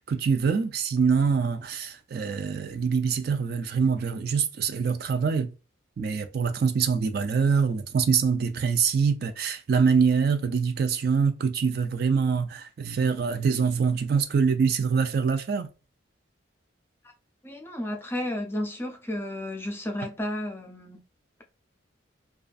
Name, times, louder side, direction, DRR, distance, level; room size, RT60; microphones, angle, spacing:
voice 1, 0.1-5.5 6.0-15.7, right 5 dB, 55° right, 0.3 m, -24 dB
voice 2, 17.4-21.0, left 1 dB, 10° left, 0.5 m, -32 dB
2.5 x 2.3 x 2.3 m
head